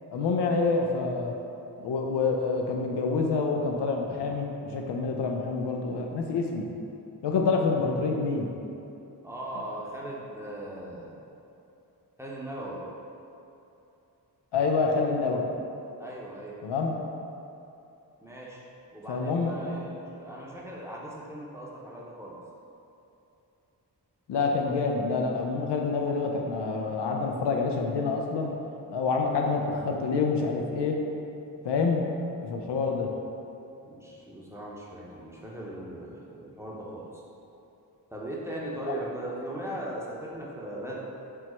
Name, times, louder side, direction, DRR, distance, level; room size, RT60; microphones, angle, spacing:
voice 1, 0.1-1.3 1.8-6.7 7.2-8.6 14.5-15.4 16.6-17.0 19.1-19.8 24.3-28.5 28.9-31.0 31.6-32.1 32.4-33.1 38.8-39.0, left 4 dB, 80° left, 1 dB, 0.5 m, -27 dB
voice 2, 9.2-11.1 12.2-12.8 16.0-16.6 18.2-18.6 18.9-22.4 33.8-37.1 38.1-41.0, right 1 dB, 5° right, -5 dB, 0.8 m, -38 dB
4.6 x 2.0 x 4.3 m, 2.8 s
cardioid pair, 50°, 41 cm